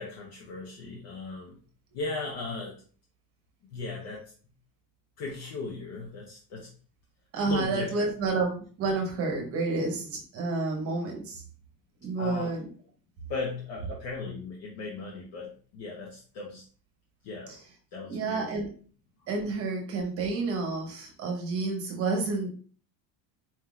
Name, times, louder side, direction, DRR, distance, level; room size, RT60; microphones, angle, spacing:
voice 1, 0.0-1.6 1.9-2.8 3.7-4.3 5.2-6.7 7.4-8.1 12.2-12.5 13.3-16.6 17.2-17.5 17.9-18.5, left 3 dB, 55° left, -2 dB, 0.9 m, -37 dB
voice 2, 7.3-11.4 12.0-12.7 17.5-17.6 18.1-18.7 19.3-22.5, right 3 dB, 30° right, 2 dB, 0.9 m, -30 dB
4.4 x 3.6 x 2.4 m, 0.42 s
cardioid pair, 165°, 50 cm